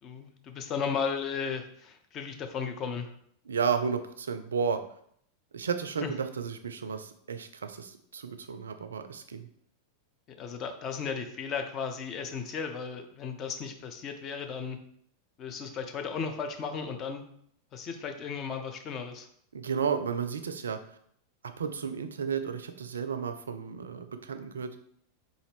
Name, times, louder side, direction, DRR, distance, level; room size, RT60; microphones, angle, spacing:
voice 1, 0.0-3.1 6.0-6.1 10.3-14.8 15.4-17.3 17.7-19.3, left 6 dB, 30° left, 6 dB, 0.5 m, -35 dB
voice 2, 3.5-4.8 5.5-9.5 19.5-20.8 21.4-24.8, right 6 dB, 70° right, 9 dB, 0.3 m, -33 dB
3.9 x 2.5 x 3.3 m, 0.66 s
figure-of-eight pair, 90°, 0 cm